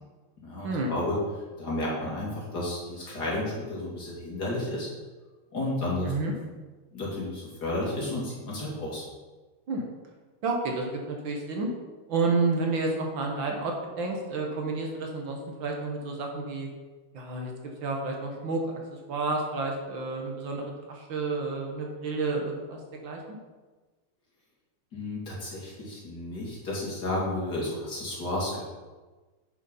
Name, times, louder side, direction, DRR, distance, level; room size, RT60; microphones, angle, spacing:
voice 1, 0.4-1.2 1.6-4.9 5.5-6.1 6.9-9.0 24.9-28.6, left 1 dB, 50° left, -5 dB, 3.1 m, -32 dB
voice 2, 10.4-11.7 12.1-16.7 17.1-17.5 17.8-18.7 19.1-23.2, right 3 dB, 65° right, 1 dB, 2.0 m, -30 dB
8.1 x 6.5 x 5.5 m, 1.3 s
omnidirectional pair, 2.3 m